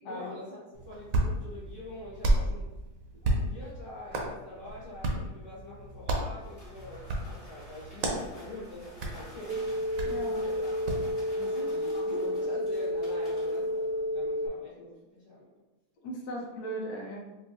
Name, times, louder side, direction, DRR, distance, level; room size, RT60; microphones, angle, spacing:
voice 1, 0.1-2.7 3.3-9.7 10.0-10.8 11.3-15.5, left 2 dB, 55° left, -9 dB, 1.3 m, -44 dB
Hands, 0.7-11.1, right 1 dB, 65° right, 1.0 m, -33 dB
sound 1, 5.7-14.5, equal, 25° left, 1.0 m, -51 dB
sound 2, 9.5-14.5, left 1 dB, 50° right, 0.5 m, -31 dB
voice 2, 10.0-10.4 11.9-12.3 16.0-17.2, right 1 dB, 90° left, -1 dB, 1.2 m, -38 dB
4.4 x 2.3 x 2.6 m, 1.0 s
omnidirectional pair, 1.7 m